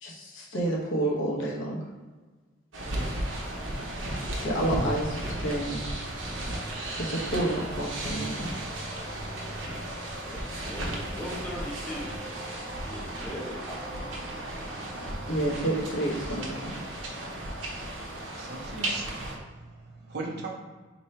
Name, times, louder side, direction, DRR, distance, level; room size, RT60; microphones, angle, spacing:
voice 1, 0.0-1.8 4.4-5.9 7.0-8.5 15.3-16.7, right 1 dB, 75° left, -4 dB, 0.9 m, -29 dB
sound 1, 2.7-19.4, right 1 dB, 85° right, 0.9 m, -35 dB
voice 2, 10.2-12.3 12.8-13.9, left 1 dB, 10° left, -4 dB, 0.7 m, -40 dB
voice 3, 18.3-20.5, right 3 dB, 55° right, -1 dB, 0.8 m, -39 dB
3.2 x 3.0 x 4.2 m, 1.3 s
head